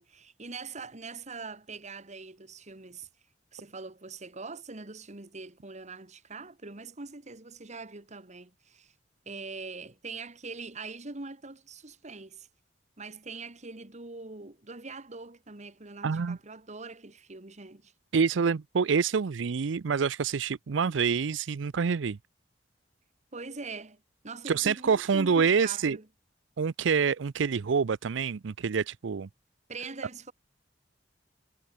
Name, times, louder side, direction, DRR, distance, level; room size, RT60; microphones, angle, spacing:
voice 1, 0.0-3.1 3.5-8.9 9.3-12.5 13.0-17.9 23.3-26.1 29.7-30.3, right 3 dB, 40° right, 1.7 m, -43 dB
voice 2, 16.0-16.4 18.1-22.2 24.5-26.0 26.6-29.3, right 6 dB, 85° right, 0.5 m, -27 dB
head